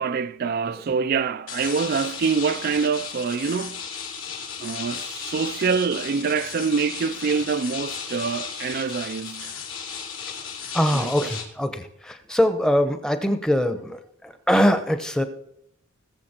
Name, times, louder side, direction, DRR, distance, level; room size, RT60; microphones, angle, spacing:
voice 1, 0.0-3.8 4.6-9.6 10.9-11.1, right 5 dB, 45° right, 0.3 m, -25 dB
sound 1, 1.5-11.4, left 6 dB, 65° left, 2.7 m, -35 dB
voice 2, 10.7-15.2, equal, 5° left, 0.9 m, -22 dB
20.0 x 7.3 x 4.4 m
head